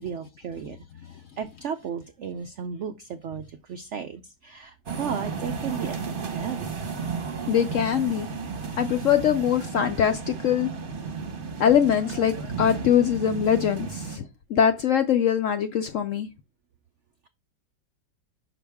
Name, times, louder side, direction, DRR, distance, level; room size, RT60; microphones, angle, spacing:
voice 1, 0.0-6.7, right 7 dB, 85° right, 0.6 m, -35 dB
sound 1, 4.9-14.2, right 5 dB, 35° right, 1.0 m, -33 dB
voice 2, 7.5-8.3 8.8-10.7 11.6-16.3, left 9 dB, 70° left, 0.7 m, -22 dB
6.0 x 5.7 x 3.5 m
omnidirectional pair, 1.9 m